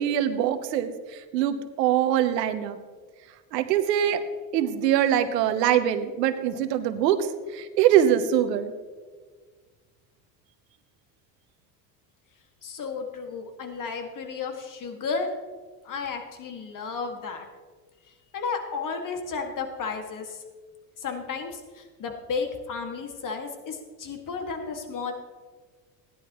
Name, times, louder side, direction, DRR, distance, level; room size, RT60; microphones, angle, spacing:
voice 1, 0.0-2.8 3.5-4.2 4.5-8.7, right 10 dB, 85° right, 10 dB, 1.1 m, -23 dB
voice 2, 12.6-15.3 15.8-17.5 18.1-20.4 21.0-25.1, left 5 dB, 40° left, 4 dB, 2.1 m, -33 dB
17.0 x 11.0 x 3.1 m, 1.5 s
hypercardioid pair, 80°, 48 cm